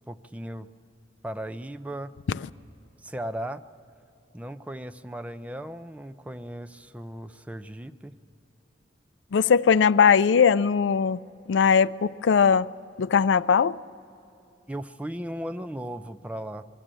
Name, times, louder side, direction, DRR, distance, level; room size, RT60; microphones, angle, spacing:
voice 1, 0.1-0.7 1.2-2.1 3.0-3.6 4.3-8.1 14.7-16.6, right 1 dB, 10° right, 0.4 m, -36 dB
voice 2, 9.3-11.2 11.5-12.7 13.0-13.8, left 6 dB, 85° left, 0.4 m, -20 dB
23.0 x 13.5 x 8.9 m
head